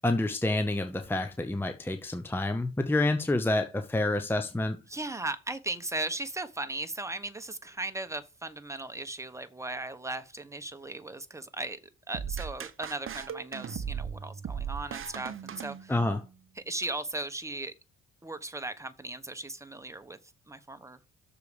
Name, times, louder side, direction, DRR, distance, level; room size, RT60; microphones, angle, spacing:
voice 1, 0.0-4.8 15.9-16.2, left 2 dB, 5° left, 0.9 m, -28 dB
voice 2, 4.9-11.8 12.1-15.9 16.6-17.7 18.2-20.2 20.5-21.0, right 2 dB, 10° right, 1.2 m, -37 dB
sound 1, 12.1-16.3, right 7 dB, 45° right, 0.9 m, -38 dB
6.8 x 4.8 x 6.8 m
cardioid pair, 90°, 30 cm